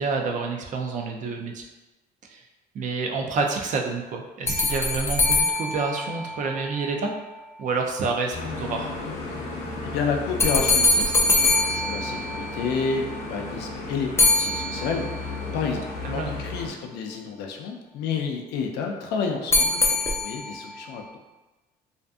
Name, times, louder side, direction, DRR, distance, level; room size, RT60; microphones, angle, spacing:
voice 1, 0.0-1.6 2.3-2.4 2.7-7.1 7.6-8.9 16.0-16.3, right 4 dB, 50° right, 2 dB, 0.4 m, -28 dB
sound 1, 4.5-6.9 10.4-12.9 14.2-15.4 19.5-20.7, left 2 dB, 15° left, 0.3 m, -23 dB
sound 2, 8.3-16.7, left 3 dB, 40° left, 0.7 m, -34 dB
voice 2, 9.8-21.0, left 5 dB, 80° left, 2 dB, 0.4 m, -30 dB
2.5 x 2.5 x 2.3 m, 1.1 s
cardioid pair, 110°, 17 cm